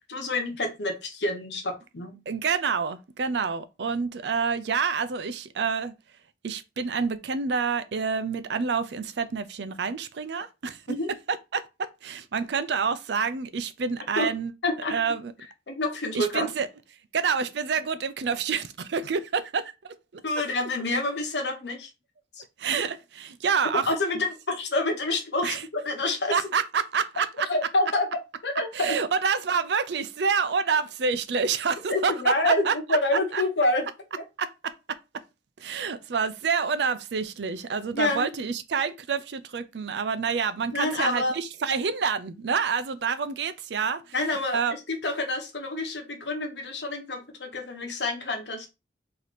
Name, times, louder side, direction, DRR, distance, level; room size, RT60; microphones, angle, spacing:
voice 1, 0.1-2.2 10.9-11.1 14.2-14.3 14.6-14.9 15.7-16.5 20.2-21.9 23.9-26.4 27.5-28.1 28.4-29.0 31.9-33.8 34.2-34.3 37.9-38.3 40.7-41.3 44.1-48.7, left 2 dB, 80° left, 1.1 m, -27 dB
voice 2, 2.3-5.9 6.4-11.0 11.3-14.5 14.9-15.3 16.1-16.7 17.1-20.2 22.6-24.2 25.4-25.6 26.3-27.5 28.7-33.0 33.3-33.4 34.4-35.0 35.6-44.1 44.5-44.7, right 5 dB, 80° right, 0.5 m, -28 dB
3.2 x 2.8 x 4.1 m
head